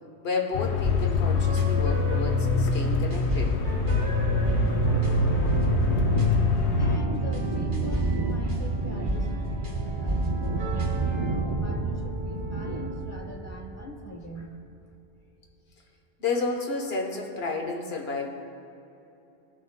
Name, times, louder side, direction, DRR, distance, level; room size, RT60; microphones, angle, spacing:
voice 1, 0.2-3.6 16.2-18.3, left 3 dB, 70° left, 1 dB, 1.3 m, -31 dB
sound 1, 0.5-7.0, left 6 dB, 90° left, 0.9 m, -25 dB
sound 2, 0.8-11.1, equal, 65° right, 1.4 m, -31 dB
sound 3, 2.7-14.4, right 3 dB, 35° right, 0.5 m, -30 dB
voice 2, 6.8-14.5, equal, 15° left, 0 dB, 0.8 m, -41 dB
15.5 x 6.4 x 2.2 m, 2.8 s
omnidirectional pair, 1.1 m